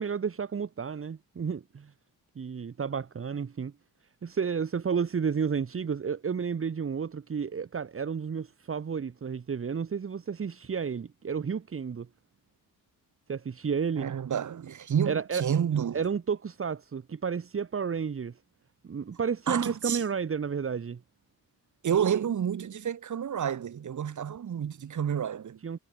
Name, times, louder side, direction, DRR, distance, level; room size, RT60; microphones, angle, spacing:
voice 1, 0.0-1.9 2.4-3.7 4.2-12.1 13.3-14.1 15.1-15.4 15.9-18.4 18.8-21.0 25.6-25.8, right 6 dB, 35° right, 1.9 m, -31 dB
voice 2, 14.0-16.0 19.5-20.0 21.8-25.6, right 8 dB, 55° right, 2.5 m, -29 dB
cardioid pair, 110°, 36 cm